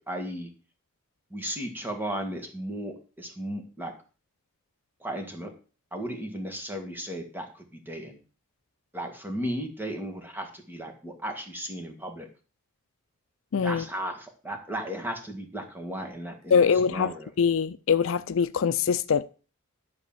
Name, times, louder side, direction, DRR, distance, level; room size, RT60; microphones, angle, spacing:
voice 1, 0.1-0.5 1.3-3.9 5.0-5.5 5.9-8.2 8.9-12.3 13.6-17.3, equal, 10° right, 1.8 m, -35 dB
voice 2, 13.5-13.9 16.5-19.2, left 6 dB, 65° left, 0.4 m, -23 dB
11.0 x 4.1 x 7.2 m
head